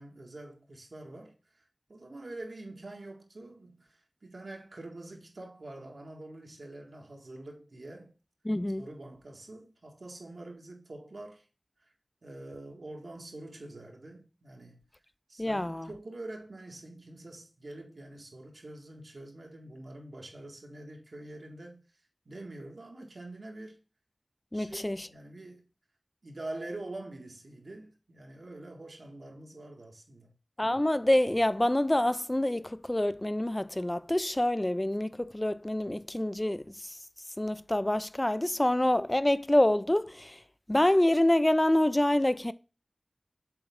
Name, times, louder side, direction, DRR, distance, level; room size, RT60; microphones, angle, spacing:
voice 1, 0.0-1.6 1.9-8.1 8.8-11.4 11.8-11.9 12.2-14.8 15.3-21.8 22.2-23.8 24.5-25.7 26.2-30.4, right 2 dB, 80° right, 1.7 m, -45 dB
voice 2, 8.5-8.8 15.4-15.9 24.5-25.0 30.6-37.0 37.4-40.4 40.7-42.5, left 1 dB, 25° left, 0.4 m, -26 dB
6.9 x 4.1 x 3.6 m
wide cardioid pair, 40°, 0 cm